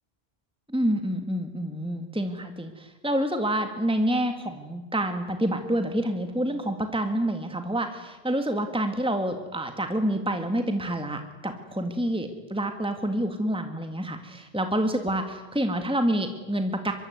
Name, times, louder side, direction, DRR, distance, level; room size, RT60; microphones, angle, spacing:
voice 1, 0.7-16.9, right 1 dB, 5° right, 6 dB, 1.9 m, -28 dB
24.0 x 23.5 x 9.3 m, 1.2 s
omnidirectional pair, 1.0 m